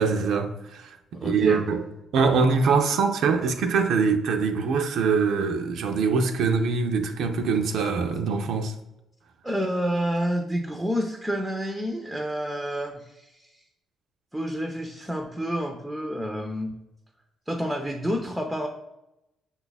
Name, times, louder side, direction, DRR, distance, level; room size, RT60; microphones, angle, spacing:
voice 1, 0.0-1.0 1.2-8.7, right 5 dB, 75° right, 0.4 m, -23 dB
voice 2, 1.1-1.7 9.4-13.5 14.3-16.7 17.5-18.7, equal, 5° right, 0.5 m, -29 dB
5.6 x 2.3 x 4.0 m
cardioid pair, 90°, 0 cm